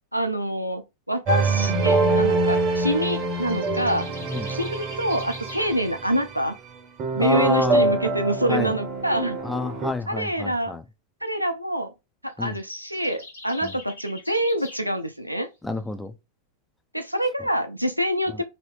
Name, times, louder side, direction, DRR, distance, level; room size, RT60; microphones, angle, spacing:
voice 1, 0.1-4.1 4.5-6.6 7.1-9.4 10.1-10.8 11.2-11.9 12.2-15.5 16.9-18.4, right 1 dB, 90° right, 0.5 m, -26 dB
sound 1, 1.3-6.5 7.0-9.9, right 3 dB, 35° right, 0.7 m, -25 dB
sound 2, 3.4-5.7 12.3-14.9, left 2 dB, 75° left, 1.3 m, -44 dB
voice 2, 7.2-7.9 8.5-8.7 9.4-10.8 12.4-12.6 13.6-13.7 15.6-16.1, left 2 dB, 5° left, 0.4 m, -28 dB
3.1 x 2.7 x 3.0 m
figure-of-eight pair, 90°, 0 cm